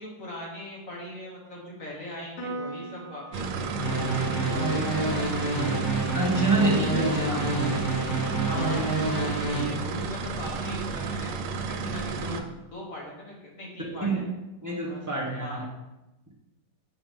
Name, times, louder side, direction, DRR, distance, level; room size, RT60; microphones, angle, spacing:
voice 1, 0.0-5.6 8.4-11.3 11.7-12.4 12.7-14.3 14.6-15.0 15.4-15.6, left 1 dB, 50° left, -3 dB, 1.7 m, -40 dB
Piano, 2.4-9.0, right 2 dB, 90° left, 2.1 m, -44 dB
sound 1, 3.3-12.4, right 4 dB, 80° right, 1.3 m, -32 dB
sound 2, 3.8-9.6, right 2 dB, 65° left, 2.1 m, -28 dB
voice 2, 6.1-7.6 13.8-14.2 14.6-15.7, right 3 dB, 10° right, -4 dB, 1.0 m, -27 dB
7.3 x 4.8 x 3.7 m, 0.99 s
omnidirectional pair, 2.0 m